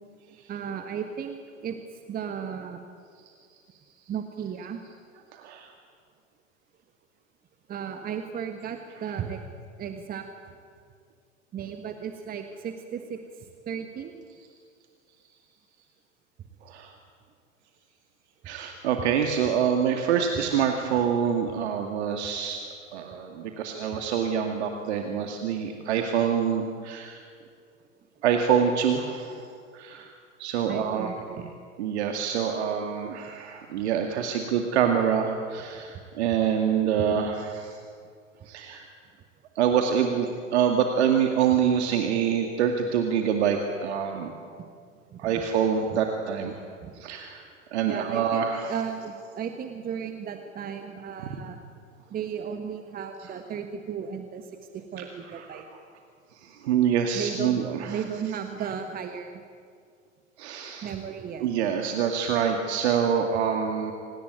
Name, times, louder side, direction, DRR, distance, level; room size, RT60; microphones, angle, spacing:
voice 1, 0.5-1.8 2.1-2.8 4.1-4.8 7.7-9.4 9.8-10.2 11.5-14.2 27.4-27.5 30.7-31.5 35.9-36.0 38.4-38.5 45.1-45.3 45.9-46.0 46.5-46.9 47.8-51.6 52.1-55.7 57.1-57.6 57.9-59.4 60.8-61.5, right 7 dB, 20° right, 6 dB, 1.5 m, -35 dB
voice 2, 5.3-5.7 16.6-16.9 18.5-22.6 22.9-27.2 28.2-29.5 29.7-30.1 30.4-31.1 31.8-37.8 38.5-38.8 39.6-44.3 45.2-46.5 47.0-48.8 55.3-55.6 56.4-58.0 60.4-60.9 61.4-63.9, right 8 dB, 55° right, 4 dB, 2.3 m, -26 dB
27.0 x 18.5 x 9.3 m, 2.2 s
figure-of-eight pair, 95°, 40 cm